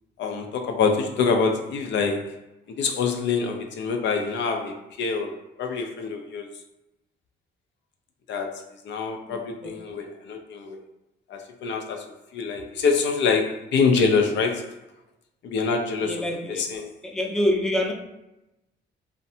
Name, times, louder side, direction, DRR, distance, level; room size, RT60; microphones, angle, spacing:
voice 1, 0.2-2.4 2.7-6.5 8.3-10.8 11.3-12.0 12.3-14.7 15.4-16.9, left 5 dB, 65° left, 4 dB, 0.4 m, -25 dB
voice 2, 16.1-16.6 17.1-17.9, left 1 dB, 5° left, 0 dB, 0.4 m, -24 dB
2.6 x 2.1 x 2.6 m, 0.93 s
cardioid pair, 90°, 20 cm